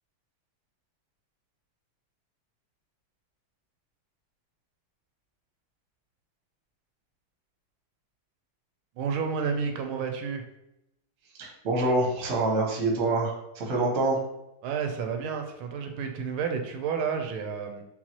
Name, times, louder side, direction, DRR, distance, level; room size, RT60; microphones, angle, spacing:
voice 1, 9.0-10.4 14.6-17.8, right 6 dB, 75° right, 4 dB, 1.3 m, -30 dB
voice 2, 11.4-14.2, right 2 dB, 55° right, -2 dB, 0.9 m, -26 dB
5.5 x 2.3 x 2.9 m, 0.85 s
omnidirectional pair, 2.4 m